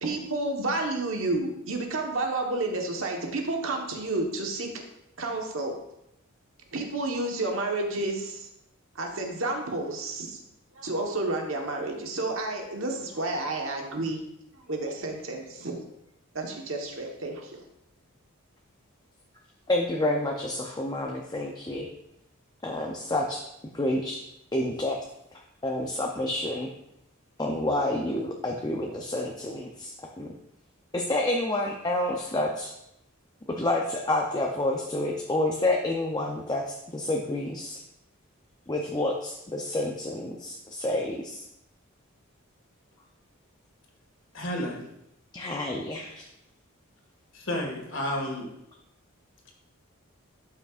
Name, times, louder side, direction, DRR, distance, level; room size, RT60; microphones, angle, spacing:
voice 1, 0.0-4.7 5.2-5.8 6.7-8.5 8.9-10.4 10.7-14.2 14.7-15.8 16.3-17.6, right 2 dB, 70° right, 2 dB, 1.3 m, -30 dB
voice 2, 19.7-21.9 22.6-23.4 23.7-24.2 24.5-25.0 25.6-26.7 27.4-30.3 30.9-32.7 33.5-37.8 38.7-41.4 45.3-46.2, left 1 dB, 20° left, 1 dB, 0.6 m, -29 dB
voice 3, 44.3-44.8 47.3-48.5, left 1 dB, 60° left, 0 dB, 1.9 m, -31 dB
12.0 x 5.8 x 2.5 m, 0.82 s
head